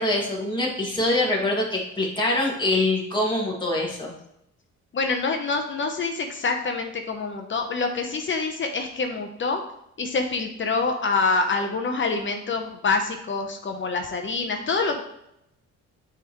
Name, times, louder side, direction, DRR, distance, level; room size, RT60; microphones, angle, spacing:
voice 1, 0.0-4.1, left 2 dB, 15° left, -3 dB, 2.0 m, -24 dB
voice 2, 4.9-9.6 10.0-15.0, left 4 dB, 40° left, 4 dB, 0.8 m, -26 dB
8.9 x 3.6 x 3.0 m, 0.79 s
cardioid pair, 90°, 30 cm